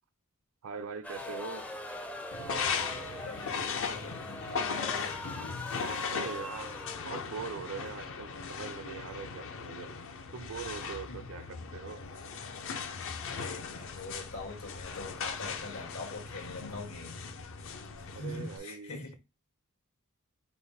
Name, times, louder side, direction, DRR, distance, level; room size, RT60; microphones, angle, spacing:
voice 1, 0.6-1.7 6.1-6.8 7.0-10.0 10.3-12.0 18.1-19.1, right 6 dB, 65° right, 0.5 m, -42 dB
sound 1, 1.0-8.2, left 1 dB, 5° left, 0.4 m, -42 dB
sound 2, 2.3-18.6, left 5 dB, 60° left, 0.6 m, -38 dB
voice 2, 3.3-5.2 11.1-11.2 13.3-17.2 18.0-19.1, left 2 dB, 80° left, 1.8 m, -43 dB
5.6 x 2.1 x 4.0 m
head